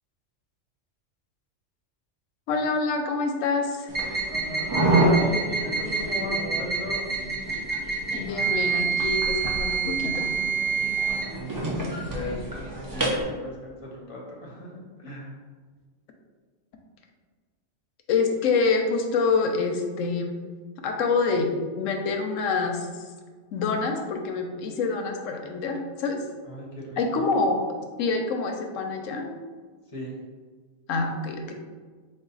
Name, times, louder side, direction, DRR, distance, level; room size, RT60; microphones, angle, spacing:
voice 1, 2.5-3.9 8.1-10.3 18.1-20.5 20.8-21.5 21.7-22.9 23.5-26.2 27.0-27.6 28.0-29.3 30.9-31.5, left 4 dB, 90° left, 4 dB, 1.0 m, -26 dB
sound 1, 3.9-13.2, right 3 dB, 25° right, 0.5 m, -26 dB
voice 2, 4.9-7.1 11.2-15.3 26.4-27.3 29.9-30.2, left 1 dB, 30° left, -2 dB, 0.7 m, -36 dB
4.1 x 2.5 x 3.8 m, 1.5 s
omnidirectional pair, 1.3 m